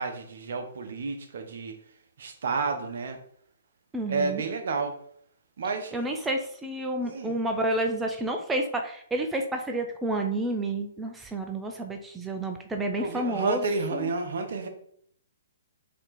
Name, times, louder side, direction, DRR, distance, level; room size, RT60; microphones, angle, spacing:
voice 1, 0.0-1.8 2.2-3.2 4.1-5.0 5.6-5.9 7.0-7.4 13.0-14.7, right 4 dB, 65° right, 6 dB, 0.8 m, -30 dB
voice 2, 3.9-4.4 5.9-13.6 13.9-14.1, right 1 dB, 10° right, 3 dB, 0.5 m, -30 dB
4.2 x 2.9 x 4.1 m, 0.65 s
hypercardioid pair, 135°, 0 cm